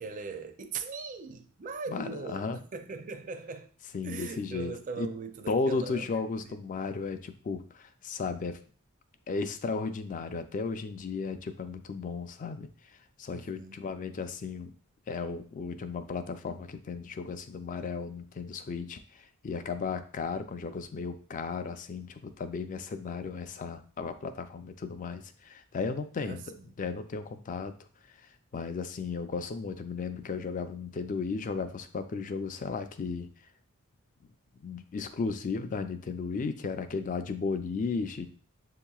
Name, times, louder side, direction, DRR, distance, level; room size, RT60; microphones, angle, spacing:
voice 1, 0.0-3.7 4.0-6.6 13.3-13.8 26.2-26.7, right 4 dB, 35° right, 0.4 m, -40 dB
voice 2, 1.9-2.6 3.9-4.7 5.0-5.1 5.5-8.6 9.3-12.7 13.2-14.7 15.1-27.7 28.5-33.3 34.6-38.3, left 4 dB, 35° left, 0.3 m, -35 dB
7.1 x 2.9 x 2.3 m
head